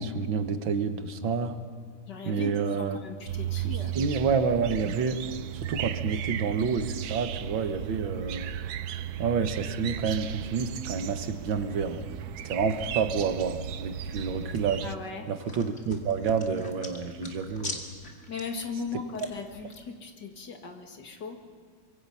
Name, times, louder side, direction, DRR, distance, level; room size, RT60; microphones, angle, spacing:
voice 1, 0.0-1.6 2.3-3.0 3.6-5.2 5.5-8.5 9.2-12.0 12.4-14.8 15.3-17.8, right 5 dB, 85° right, 8 dB, 2.1 m, -29 dB
voice 2, 2.1-4.0 14.8-15.3 18.3-21.4, left 4 dB, 65° left, 4 dB, 2.6 m, -38 dB
sound 1, 3.3-15.0, right 10 dB, 65° right, 1.1 m, -35 dB
sound 2, 14.1-19.8, left 2 dB, 40° left, 2.6 m, -44 dB
25.0 x 22.5 x 5.7 m, 2.1 s
omnidirectional pair, 2.1 m